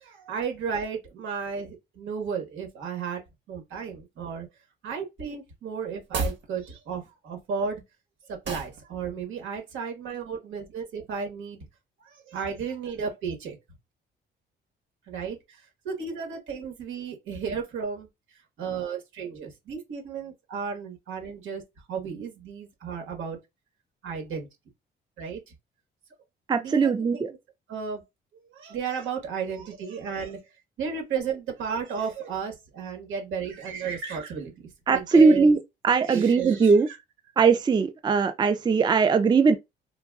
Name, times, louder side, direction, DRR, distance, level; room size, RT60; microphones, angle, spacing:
voice 1, 0.0-3.2 3.5-4.5 4.8-7.8 8.3-11.6 12.0-13.6 15.1-18.1 18.6-21.6 21.9-23.4 24.0-24.5 25.2-25.5 26.6-27.4 27.7-28.0 28.5-30.4 30.8-34.5 34.9-35.5 36.0-37.0, right 6 dB, 85° right, 1.5 m, -33 dB
sound 1, 6.0-6.5 8.4-8.8, right 3 dB, 65° right, 1.3 m, -30 dB
voice 2, 26.5-27.3 34.9-35.6 35.8-36.9 37.4-39.6, right 4 dB, 20° right, 0.4 m, -20 dB
3.8 x 2.4 x 2.4 m
cardioid pair, 90°, 20 cm